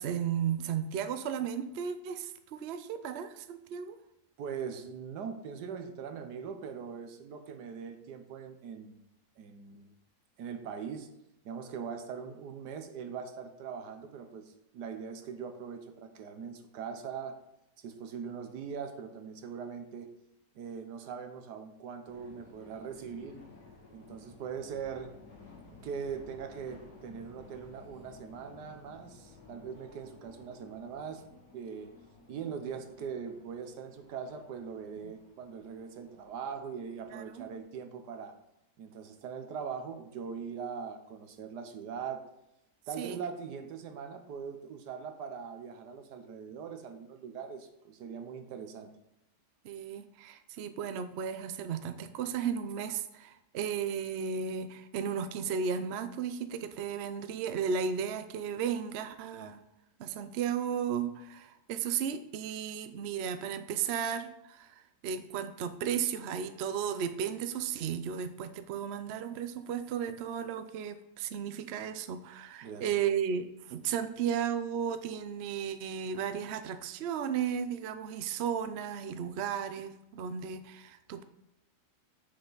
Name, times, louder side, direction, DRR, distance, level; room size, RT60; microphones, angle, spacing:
voice 1, 0.0-4.0 35.0-35.1 37.1-37.5 43.0-43.2 49.6-59.6 60.0-81.2, right 7 dB, 65° right, 10 dB, 0.6 m, -34 dB
voice 2, 4.4-9.0 9.4-9.9 10.4-11.1 11.4-17.4 17.8-20.1 20.5-23.4 23.9-25.1 25.8-31.2 31.5-31.9 32.3-38.4 38.8-42.2 42.9-48.9 72.6-72.9, right 6 dB, 85° right, 7 dB, 1.4 m, -41 dB
sound 1, 22.0-37.6, left 3 dB, 70° left, 2.8 m, -55 dB
7.7 x 6.6 x 3.9 m, 0.85 s
omnidirectional pair, 1.7 m